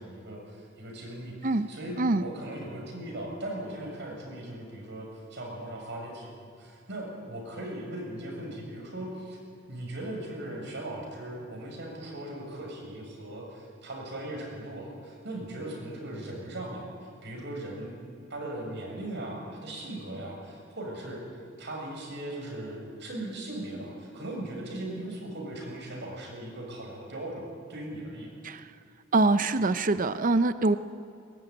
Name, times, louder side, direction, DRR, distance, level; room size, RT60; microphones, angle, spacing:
voice 1, 0.0-9.4 9.7-17.9 18.3-21.2 21.6-28.3, right 1 dB, 60° right, 0 dB, 7.1 m, -38 dB
voice 2, 29.1-30.8, right 2 dB, 45° right, 12 dB, 0.7 m, -24 dB
23.0 x 20.0 x 9.9 m, 2.3 s
head